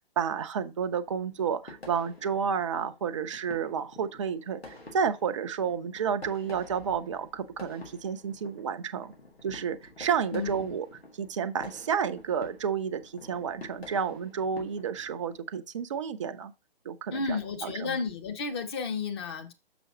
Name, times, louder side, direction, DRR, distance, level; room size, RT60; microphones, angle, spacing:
voice 1, 0.2-9.1 9.4-10.9 11.1-16.5 16.8-18.0, right 7 dB, 30° right, 0.6 m, -31 dB
sound 1, 1.1-15.4, left 2 dB, 90° left, 3.1 m, -50 dB
voice 2, 10.3-10.6 17.1-19.5, left 4 dB, 25° left, 1.0 m, -32 dB
6.9 x 6.0 x 2.8 m
figure-of-eight pair, 130°, 30 cm